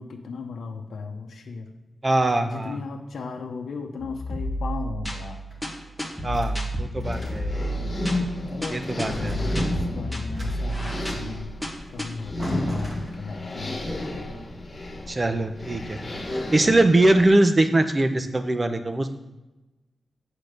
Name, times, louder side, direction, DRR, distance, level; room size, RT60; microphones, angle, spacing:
voice 1, 0.0-1.7 2.5-5.4 7.7-8.1 8.5-11.6 11.9-13.8, left 4 dB, 85° left, 2 dB, 0.9 m, -36 dB
voice 2, 2.0-2.8 6.2-6.5 6.8-7.6 8.7-9.3 15.1-16.0 16.5-19.1, right 2 dB, 30° right, 8 dB, 0.8 m, -21 dB
sound 1, 4.0-12.0, equal, 5° right, 1.5 m, -31 dB
sound 2, 5.5-6.6 7.0-7.6 8.0-8.5 8.8-11.0 11.9-12.0 12.4-13.6, equal, 45° right, 2.1 m, -38 dB
sound 3, 7.0-17.3, left 1 dB, 25° left, 1.9 m, -32 dB
8.4 x 4.2 x 6.6 m, 1.1 s
wide cardioid pair, 100°, 0 cm